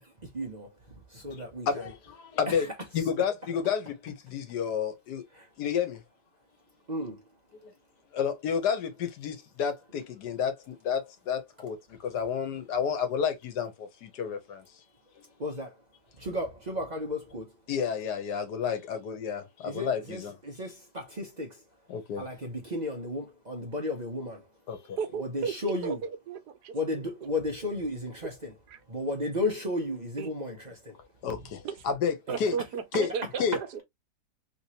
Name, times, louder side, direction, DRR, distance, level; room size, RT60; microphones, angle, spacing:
voice 1, 0.0-1.9 2.5-2.7 5.3-5.5 6.9-7.2 15.4-15.8 16.1-17.5 19.6-21.6 22.2-24.5 25.1-26.0 26.7-28.6 28.9-31.5 33.5-33.6, left 1 dB, 35° right, 0.7 m, -34 dB
voice 2, 1.7-2.7 2.9-5.2 5.6-6.0 7.6-7.7 8.1-14.6 17.7-20.3 21.9-22.3 24.7-25.0 31.2-32.6 32.9-33.1 33.4-33.6, left 7 dB, 75° left, 1.4 m, -31 dB
voice 3, 25.0-25.9 26.3-27.0 30.2-30.3 31.6-31.7 32.3-33.8, right 6 dB, 75° right, 1.3 m, -34 dB
3.3 x 3.0 x 2.7 m
omnidirectional pair, 1.8 m